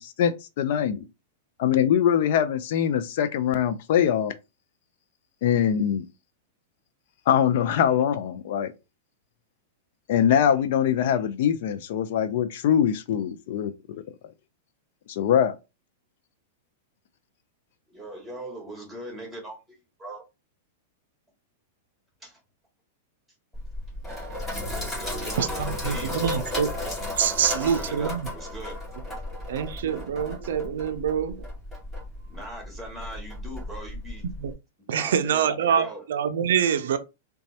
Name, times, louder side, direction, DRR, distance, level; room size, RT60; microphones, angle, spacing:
voice 1, 0.0-1.0 1.6-4.3 5.4-6.1 7.3-8.7 10.1-14.0 15.1-15.5, left 9 dB, 60° left, 0.4 m, -23 dB
voice 2, 17.9-20.2 22.2-22.4 24.7-26.6 27.3-28.8 29.0-29.2 32.3-34.3 34.9-36.0, right 1 dB, 5° right, 1.8 m, -40 dB
Sink (filling or washing), 23.5-34.5, left 1 dB, 15° left, 1.9 m, -34 dB
voice 3, 25.4-26.7 27.2-28.3 29.5-31.5 34.4-34.5 34.9-37.0, right 8 dB, 75° right, 0.4 m, -25 dB
4.0 x 2.3 x 2.7 m
hypercardioid pair, 125°, 0 cm